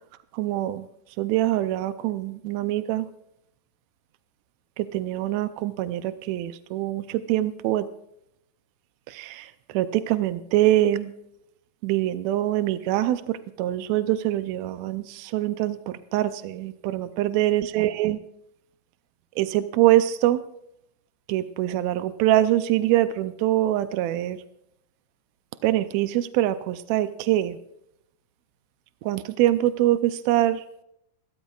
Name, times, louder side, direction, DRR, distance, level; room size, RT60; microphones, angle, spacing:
voice 1, 0.4-0.8 1.2-3.1 4.8-7.9 9.1-11.1 11.8-15.8 16.1-18.2 19.4-20.4 21.3-24.4 25.6-27.6 29.0-30.6, right 14 dB, 85° right, 11 dB, 1.6 m, -24 dB
29.5 x 13.5 x 2.4 m, 0.78 s
omnidirectional pair, 3.8 m